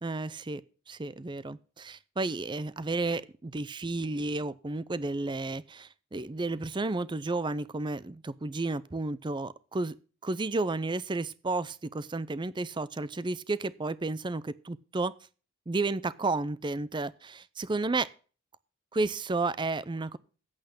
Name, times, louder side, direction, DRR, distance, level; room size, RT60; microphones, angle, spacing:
voice 1, 0.0-0.6 0.9-10.0 10.2-15.1 15.7-18.1 18.9-20.2, right 3 dB, 20° right, 19 dB, 0.5 m, -32 dB
8.7 x 8.2 x 7.8 m, 0.39 s
head